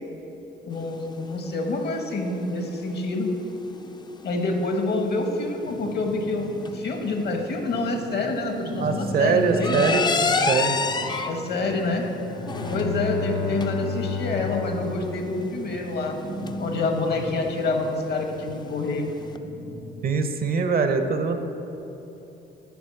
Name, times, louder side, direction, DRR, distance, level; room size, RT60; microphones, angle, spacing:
voice 1, 0.6-3.3 4.2-9.8 11.2-12.0 12.7-16.2 16.6-19.1, left 2 dB, 55° left, 4 dB, 0.9 m, -27 dB
sound 1, 0.7-19.4, left 4 dB, 20° left, 0.4 m, -32 dB
sound 2, 5.6-20.0, equal, 80° right, 0.9 m, -38 dB
voice 2, 8.8-10.8 20.0-21.4, right 5 dB, 50° right, 7 dB, 0.6 m, -23 dB
Bowed string instrument, 12.1-16.1, left 5 dB, 75° left, 1.1 m, -32 dB
7.1 x 4.1 x 6.3 m, 3.0 s
cardioid pair, 90°, 20 cm